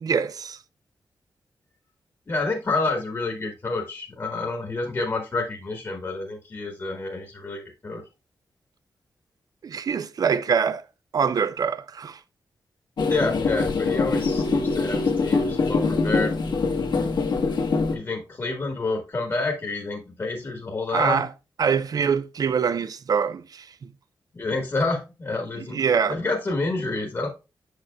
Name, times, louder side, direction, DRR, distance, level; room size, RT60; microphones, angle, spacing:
voice 1, 0.0-0.6 9.6-10.8 11.1-12.2 20.9-21.3 21.6-23.9 25.6-26.2, right 6 dB, 55° right, 0.5 m, -24 dB
voice 2, 2.3-8.0 13.1-16.3 17.9-21.2 24.3-25.8 26.1-27.3, left 3 dB, 35° left, 1.3 m, -28 dB
sound 1, 13.0-18.0, left 4 dB, 75° left, 1.3 m, -23 dB
7.6 x 6.6 x 2.2 m
wide cardioid pair, 150°, 8 cm